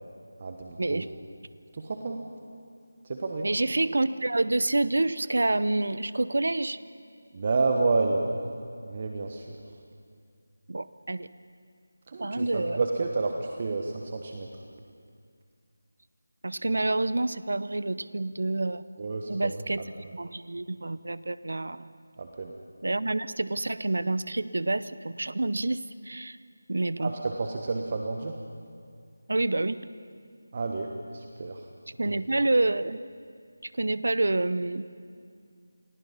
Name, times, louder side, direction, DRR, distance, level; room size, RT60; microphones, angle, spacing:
voice 1, 0.4-1.1 1.7-2.2 3.0-3.5 7.3-8.4 8.8-9.6 12.1-14.5 19.0-19.5 22.2-22.5 27.0-27.1 27.4-28.4 30.5-31.6 32.0-32.2, right 3 dB, 35° right, 3 dB, 1.4 m, -30 dB
voice 2, 3.4-6.8 10.7-11.3 12.2-12.8 16.4-18.8 19.3-21.9 22.8-26.4 26.7-27.1 29.3-29.9 32.0-33.0 33.6-34.9, right 2 dB, 60° right, 15 dB, 0.8 m, -28 dB
29.0 x 20.0 x 5.7 m, 2.2 s
figure-of-eight pair, 160°, 0 cm